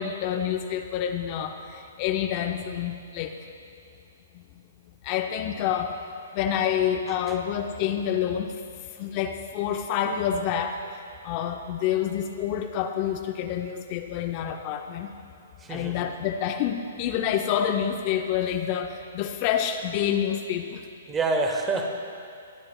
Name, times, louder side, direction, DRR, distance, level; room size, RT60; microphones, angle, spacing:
voice 1, 0.0-3.4 5.0-6.0 6.3-8.5 9.0-10.8 11.2-15.1 15.7-20.8, left 9 dB, 35° left, 6 dB, 0.5 m, -28 dB
voice 2, 15.6-16.1 21.1-21.9, right 3 dB, 15° right, 3 dB, 0.9 m, -27 dB
20.5 x 8.7 x 2.2 m, 2.4 s
hypercardioid pair, 140°, 0 cm